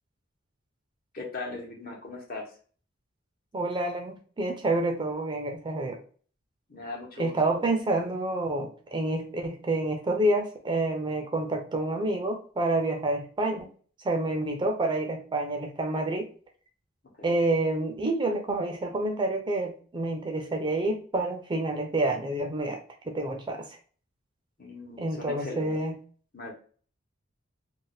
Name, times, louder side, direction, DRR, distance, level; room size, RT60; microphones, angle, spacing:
voice 1, 1.1-2.5 6.7-7.6 17.2-17.3 24.6-25.8 26.3-26.5, left 3 dB, 50° left, -1 dB, 1.0 m, -39 dB
voice 2, 3.5-6.0 7.2-13.7 14.0-16.3 17.2-22.8 23.0-23.8 25.0-26.0, right 2 dB, 25° right, 4 dB, 0.5 m, -28 dB
2.6 x 2.2 x 3.9 m, 0.42 s
head